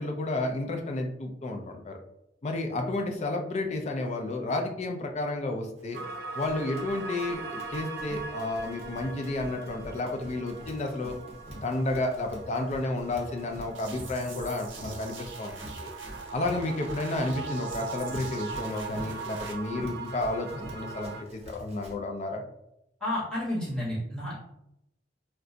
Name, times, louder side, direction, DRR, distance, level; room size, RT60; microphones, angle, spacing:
voice 1, 0.0-2.0 2.4-6.0 6.4-11.1 11.6-15.9 16.3-22.4, left 2 dB, 35° left, 3 dB, 0.4 m, -31 dB
Run, 5.8-21.9, equal, 35° right, 0.7 m, -46 dB
sound 1, 5.9-21.2, right 4 dB, 55° right, 0.3 m, -41 dB
sound 2, 13.7-19.5, right 5 dB, 85° right, 0.6 m, -47 dB
voice 2, 23.0-24.4, left 1 dB, 5° left, -9 dB, 1.3 m, -31 dB
2.4 x 2.2 x 3.7 m, 0.82 s
head